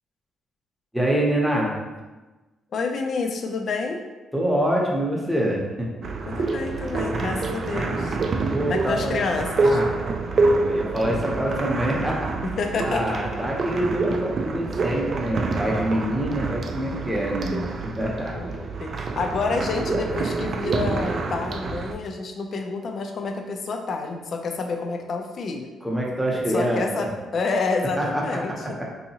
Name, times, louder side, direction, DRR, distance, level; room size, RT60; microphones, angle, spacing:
voice 1, 0.9-1.7 4.3-5.9 8.5-9.2 9.5-10.0 10.5-12.3 12.8-17.6 17.9-18.3 25.8-27.1 28.0-28.9, right 1 dB, 5° right, -3 dB, 0.7 m, -25 dB
voice 2, 2.7-4.0 6.3-8.2 8.7-9.8 12.6-13.0 18.3-25.7 26.5-28.5, left 4 dB, 50° left, 4 dB, 0.4 m, -28 dB
sound 1, 6.0-21.9, right 3 dB, 40° right, 0.3 m, -27 dB
4.5 x 2.7 x 2.8 m, 1.2 s
cardioid pair, 130°, 0 cm